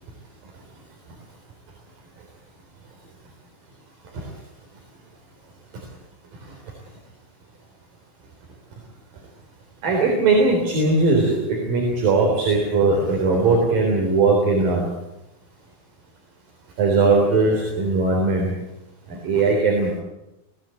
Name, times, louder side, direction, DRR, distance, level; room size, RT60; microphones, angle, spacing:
voice 1, 9.8-14.9 16.8-18.5 19.1-19.9, right 3 dB, 70° right, 0 dB, 5.5 m, -19 dB
23.0 x 17.5 x 9.1 m, 0.94 s
omnidirectional pair, 4.2 m